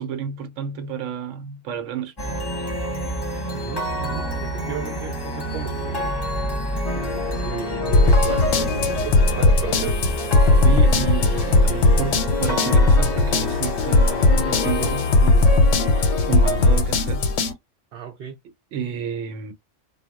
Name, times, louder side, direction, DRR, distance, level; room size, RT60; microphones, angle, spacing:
voice 1, 0.0-2.1 2.6-2.7 10.6-15.7 15.9-17.3 18.7-19.5, right 7 dB, 80° right, 1.0 m, -31 dB
sound 1, 2.2-15.5, right 1 dB, 25° left, 0.7 m, -29 dB
voice 2, 3.5-6.1 7.4-10.0 17.9-18.4, right 7 dB, 60° right, 0.7 m, -34 dB
sound 2, 6.8-16.8, left 4 dB, 55° left, 0.4 m, -30 dB
sound 3, 7.9-17.5, left 2 dB, 80° left, 0.9 m, -18 dB
2.3 x 2.0 x 3.4 m
omnidirectional pair, 1.3 m